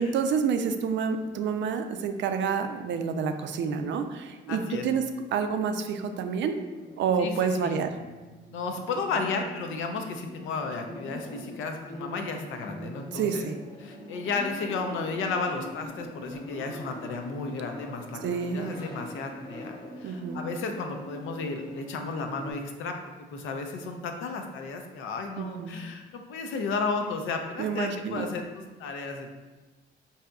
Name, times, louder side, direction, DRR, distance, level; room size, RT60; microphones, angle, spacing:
voice 1, 0.0-5.0 5.3-6.6 7.0-7.9 13.1-13.6 18.2-18.8 20.0-20.4 25.4-25.8 27.6-28.3, right 6 dB, 70° right, 7 dB, 0.4 m, -28 dB
voice 2, 4.5-4.9 7.2-7.8 8.5-13.5 13.8-22.9 23.3-29.3, left 4 dB, 85° left, 4 dB, 0.5 m, -33 dB
sound 1, 6.2-22.5, equal, 20° left, 0.7 m, -43 dB
4.8 x 2.7 x 2.3 m, 1.2 s
cardioid pair, 90°, 20 cm